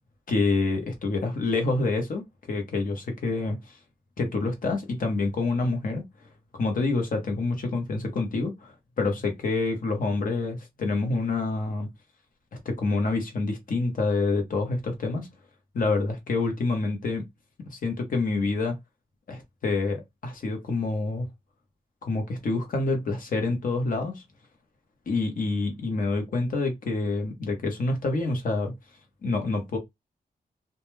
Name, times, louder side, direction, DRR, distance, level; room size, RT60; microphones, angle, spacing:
voice 1, 0.3-3.6 4.2-6.0 6.5-11.9 12.6-15.3 15.7-17.2 17.6-18.8 19.3-21.3 22.1-24.2 25.1-28.7 29.2-29.8, left 3 dB, 60° left, 0.9 m, -27 dB
2.3 x 2.2 x 3.1 m
wide cardioid pair, 175°, 16 cm